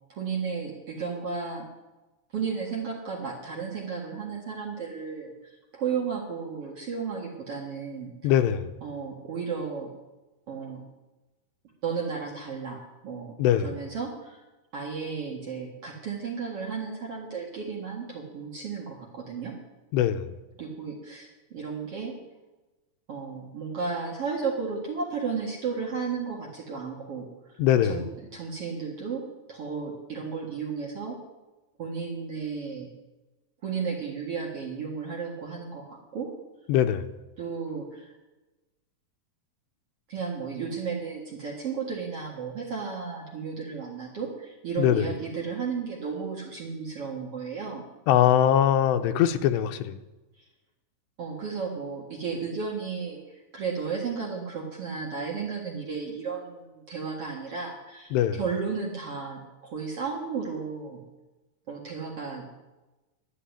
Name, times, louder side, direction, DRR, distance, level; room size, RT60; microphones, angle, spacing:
voice 1, 0.1-1.6 2.3-8.3 8.8-9.9 10.5-10.8 11.8-13.3 13.6-14.4 14.7-19.5 20.6-22.1 23.1-27.3 27.9-28.0 28.3-29.2 29.5-31.2 31.8-32.9 33.6-36.3 37.4-38.1 40.1-47.8 51.2-61.0 61.7-62.5, right 5 dB, 50° right, -1 dB, 2.0 m, -33 dB
voice 2, 8.2-8.7 13.4-13.8 19.9-20.4 27.6-28.1 36.7-37.1 44.8-45.1 48.1-50.0 58.1-58.4, left 10 dB, 90° left, 9 dB, 2.9 m, -22 dB
11.5 x 9.0 x 9.9 m, 1.1 s
omnidirectional pair, 4.9 m